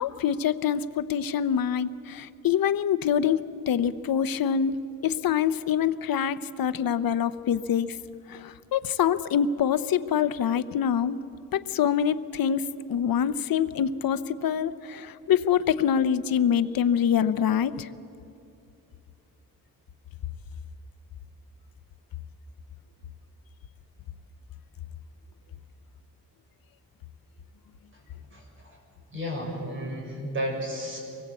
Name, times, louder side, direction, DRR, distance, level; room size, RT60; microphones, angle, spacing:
voice 1, 0.0-4.8 5.0-7.9 8.3-11.2 11.5-17.9, left 8 dB, 90° left, 13 dB, 0.8 m, -25 dB
voice 2, 29.1-31.0, equal, 35° right, -1 dB, 6.9 m, -32 dB
24.5 x 20.5 x 8.3 m, 2.6 s
wide cardioid pair, 155°, 34 cm